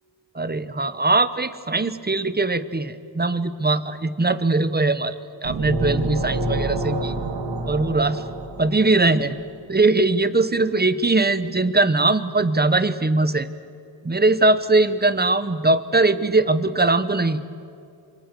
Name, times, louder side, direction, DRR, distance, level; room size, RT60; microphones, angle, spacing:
voice 1, 0.3-5.1 5.4-7.1 7.7-8.2 8.6-9.4 9.7-13.5 14.0-17.4, right 2 dB, 25° right, 13 dB, 1.0 m, -20 dB
sound 1, 5.4-9.2, right 1 dB, 85° right, 3.2 m, -27 dB
27.0 x 26.0 x 6.9 m, 2.5 s
wide cardioid pair, 110°, 42 cm